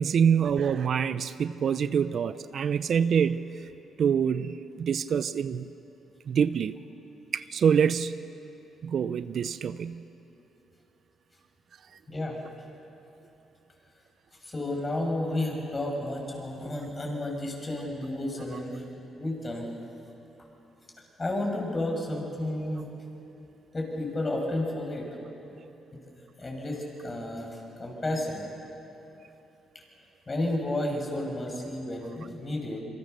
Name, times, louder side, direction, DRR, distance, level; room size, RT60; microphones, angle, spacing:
voice 1, 0.0-3.4 4.0-5.7 6.3-6.8 7.3-8.2 8.8-10.0, right 7 dB, 60° right, 13 dB, 0.6 m, -25 dB
voice 2, 14.4-18.8 19.2-19.7 21.2-22.9 23.7-25.1 26.4-28.5 30.3-32.8, left 1 dB, 25° left, 0 dB, 6.6 m, -32 dB
27.0 x 23.5 x 6.8 m, 2.9 s
cardioid pair, 90°, 0 cm